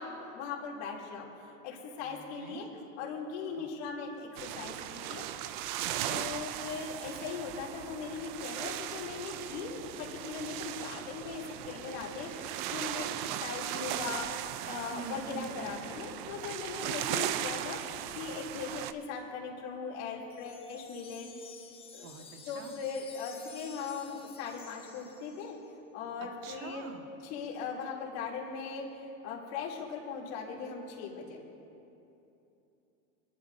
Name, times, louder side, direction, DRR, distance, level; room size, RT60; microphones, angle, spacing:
voice 1, 0.0-2.7 3.0-5.2 6.1-17.8 18.1-21.3 21.9-22.1 22.5-25.6 25.9-26.9 27.3-31.4, left 5 dB, 55° left, -3 dB, 3.0 m, -39 dB
voice 2, 2.0-2.7 3.6-3.7 5.7-6.3 14.9-15.7 16.7-17.2 22.0-22.7 26.4-27.0, right 6 dB, 65° right, 4 dB, 1.7 m, -46 dB
sound 1, 4.4-18.9, right 12 dB, 40° right, 0.4 m, -38 dB
Wind chime, 20.3-25.7, left 5 dB, 15° left, 0.8 m, -52 dB
26.0 x 11.5 x 2.7 m, 2.9 s
supercardioid pair, 150°, 41 cm